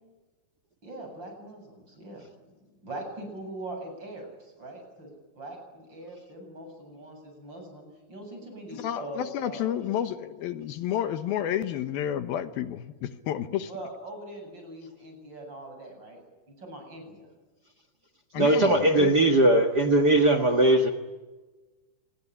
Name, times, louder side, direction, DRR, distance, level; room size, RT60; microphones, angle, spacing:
voice 1, 0.8-9.9 13.7-16.2 16.5-17.3, right 1 dB, 25° right, 3 dB, 8.5 m, -42 dB
voice 2, 8.7-13.7 18.3-19.3, left 10 dB, 70° left, 11 dB, 2.8 m, -30 dB
voice 3, 18.3-20.9, right 1 dB, 75° right, 10 dB, 0.9 m, -20 dB
27.0 x 21.0 x 10.0 m, 1.2 s
omnidirectional pair, 4.7 m